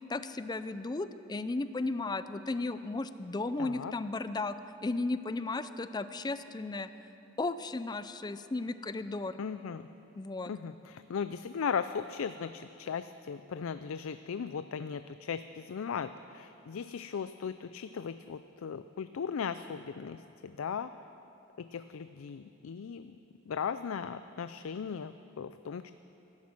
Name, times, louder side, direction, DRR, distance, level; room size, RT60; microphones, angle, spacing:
voice 1, 0.1-4.6 4.8-6.9 7.4-9.4 10.1-10.5, left 3 dB, 20° left, 12 dB, 0.4 m, -35 dB
voice 2, 3.6-3.9 9.4-9.9 10.5-20.9 21.6-23.2 23.5-25.9, left 6 dB, 85° left, 11 dB, 0.4 m, -37 dB
16.5 x 11.5 x 7.6 m, 2.9 s
head